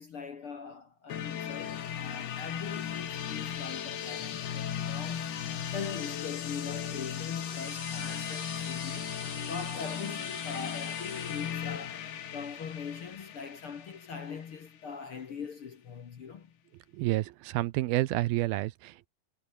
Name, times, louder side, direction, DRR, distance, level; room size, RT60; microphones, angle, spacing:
voice 1, 0.0-16.5, left 6 dB, 50° left, 1.8 m, -41 dB
sound 1, 1.1-14.8, left 9 dB, 85° left, 4.5 m, -37 dB
sound 2, 7.4-11.6, right 6 dB, 45° right, 4.0 m, -48 dB
voice 2, 16.9-19.1, right 17 dB, 80° right, 2.7 m, -29 dB
omnidirectional pair, 4.4 m